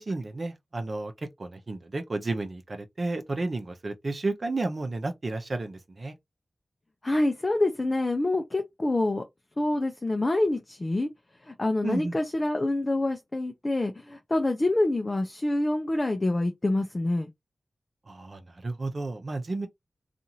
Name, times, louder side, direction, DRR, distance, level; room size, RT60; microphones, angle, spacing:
voice 1, 0.0-6.2 11.8-12.2 18.1-19.7, right 2 dB, 55° right, 0.7 m, -32 dB
voice 2, 7.0-9.2 9.6-11.1 11.5-17.3, left 2 dB, 35° left, 0.6 m, -26 dB
2.6 x 2.5 x 2.8 m
cardioid pair, 45°, 0 cm